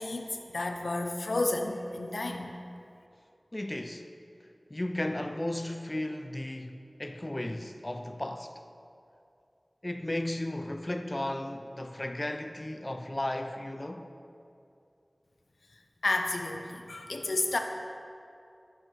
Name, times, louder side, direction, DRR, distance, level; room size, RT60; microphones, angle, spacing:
voice 1, 0.0-2.6 16.0-17.6, left 2 dB, 90° left, 0.5 m, -31 dB
voice 2, 3.5-4.1 4.7-8.6 9.8-14.1, left 1 dB, 30° left, 0.4 m, -35 dB
7.8 x 6.6 x 4.3 m
wide cardioid pair, 60°, 0 cm